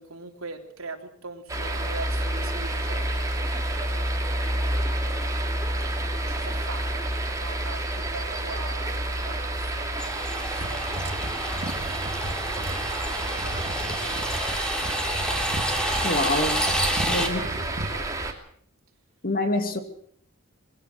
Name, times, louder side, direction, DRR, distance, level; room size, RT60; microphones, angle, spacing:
voice 1, 0.0-4.7 6.0-11.2 12.0-12.6 13.2-15.2 16.9-18.3, right 3 dB, 75° right, 4 dB, 3.4 m, -43 dB
sound 1, 1.5-18.3, right 1 dB, 15° right, 2.7 m, -29 dB
sound 2, 10.0-17.3, equal, 5° left, 2.9 m, -30 dB
sound 3, 10.6-17.9, equal, 45° right, 2.2 m, -35 dB
voice 2, 16.0-16.7 17.1-17.4 19.2-19.8, left 2 dB, 40° left, 7 dB, 2.5 m, -26 dB
21.0 x 16.5 x 7.8 m, 0.62 s
head